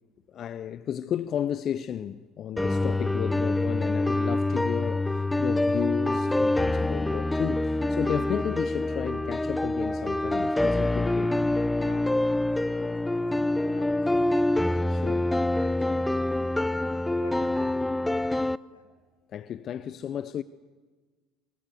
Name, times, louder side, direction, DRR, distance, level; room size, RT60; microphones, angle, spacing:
voice 1, 0.3-11.3 14.9-15.2 19.3-20.4, left 9 dB, 45° left, 0.7 m, -33 dB
sound 1, 2.6-18.6, left 2 dB, 10° left, 0.7 m, -26 dB
voice 2, 11.8-12.9 13.4-16.3 16.7-18.9, left 2 dB, 90° left, 4.3 m, -51 dB
25.0 x 23.0 x 8.0 m
hypercardioid pair, 65°, 0 cm